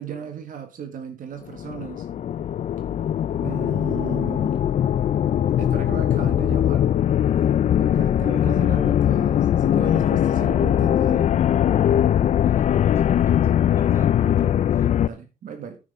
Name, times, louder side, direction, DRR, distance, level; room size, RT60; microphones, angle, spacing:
voice 1, 0.0-2.0 3.4-4.6 5.6-6.9 7.3-11.3 15.0-15.8, right 7 dB, 75° right, 6 dB, 1.8 m, -36 dB
sound 1, 1.5-15.1, left 10 dB, 55° left, 0.4 m, -20 dB
voice 2, 8.1-8.7 12.4-13.3 13.6-14.9, right 1 dB, 20° right, 4 dB, 3.6 m, -42 dB
9.4 x 9.4 x 3.6 m, 0.28 s
cardioid pair, 95°, 14 cm